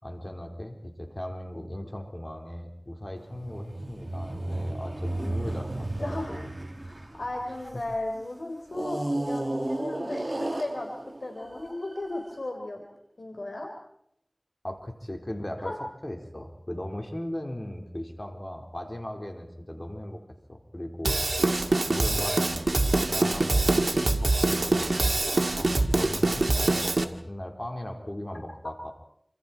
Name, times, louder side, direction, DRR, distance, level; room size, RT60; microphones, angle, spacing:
voice 1, 0.0-6.5 14.6-20.2 20.5-21.5 21.9-28.9, left 1 dB, 35° left, 2 dB, 4.6 m, -38 dB
sound 1, 3.3-7.9 8.7-12.1, right 1 dB, 50° right, 1.9 m, -33 dB
voice 2, 6.0-6.3 6.8-10.9 11.2-12.8 13.2-13.7 15.6-15.8 21.7-21.9, left 2 dB, 80° left, 2 dB, 3.9 m, -35 dB
Drum kit / Drum, 21.0-27.0, right 2 dB, 90° right, 1.9 m, -24 dB
29.0 x 26.5 x 4.6 m, 0.72 s
wide cardioid pair, 40°, 0 cm